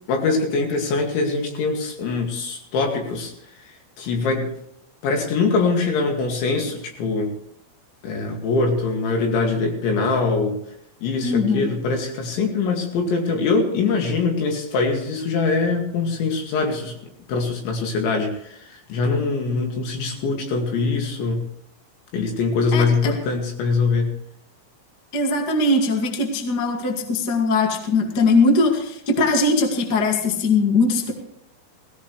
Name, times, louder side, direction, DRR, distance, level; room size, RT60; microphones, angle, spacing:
voice 1, 0.1-3.3 4.0-4.5 5.0-7.3 8.0-10.6 11.0-17.0 17.3-21.5 22.1-24.1, left 4 dB, 65° left, 2 dB, 4.4 m, -23 dB
voice 2, 11.2-11.7 22.7-23.1 25.1-31.1, left 3 dB, 85° left, 2 dB, 0.9 m, -20 dB
19.0 x 16.5 x 3.2 m, 0.74 s
omnidirectional pair, 5.9 m